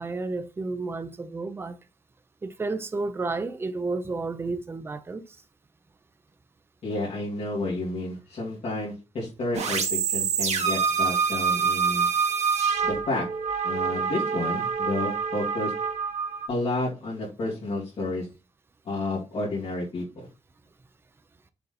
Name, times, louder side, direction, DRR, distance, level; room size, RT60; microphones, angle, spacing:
voice 1, 0.0-1.7 2.4-5.2, right 3 dB, 20° right, 0.5 m, -31 dB
voice 2, 6.8-12.1 12.8-13.2 13.6-15.7 16.5-18.3 18.8-20.3, left 2 dB, 60° left, 3.0 m, -31 dB
sound 1, 9.5-16.5, right 6 dB, 75° right, 1.5 m, -26 dB
6.8 x 4.0 x 4.1 m
wide cardioid pair, 170°, 11 cm